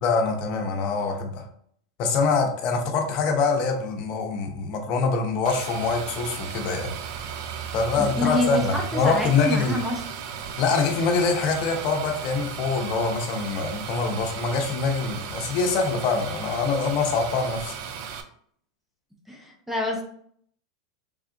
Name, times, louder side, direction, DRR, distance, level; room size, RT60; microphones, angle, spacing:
voice 1, 0.0-1.5 2.0-6.9 7.7-9.8 10.6-17.7, left 4 dB, 45° left, 3 dB, 0.8 m, -24 dB
sound 1, 5.4-18.2, right 7 dB, 50° right, 0.4 m, -36 dB
voice 2, 8.0-8.6 8.9-10.0 19.3-20.0, left 1 dB, 5° right, 0 dB, 0.6 m, -27 dB
3.4 x 2.4 x 3.8 m, 0.62 s
supercardioid pair, 140°, 3 cm